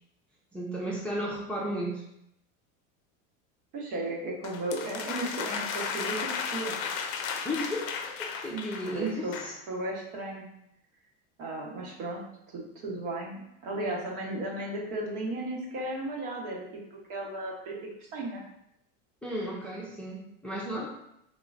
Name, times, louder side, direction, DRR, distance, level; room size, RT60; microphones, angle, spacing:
voice 1, 0.5-2.0 7.4-9.5 19.2-20.9, equal, 5° left, -5 dB, 0.6 m, -34 dB
voice 2, 3.7-6.8 8.9-9.3 9.7-10.5 11.4-12.2 12.5-16.8 17.1-18.5, right 1 dB, 60° right, -2 dB, 1.2 m, -35 dB
sound 1, 4.4-9.6, left 6 dB, 60° left, 0.5 m, -35 dB
3.7 x 3.0 x 2.6 m, 0.78 s
supercardioid pair, 115°, 37 cm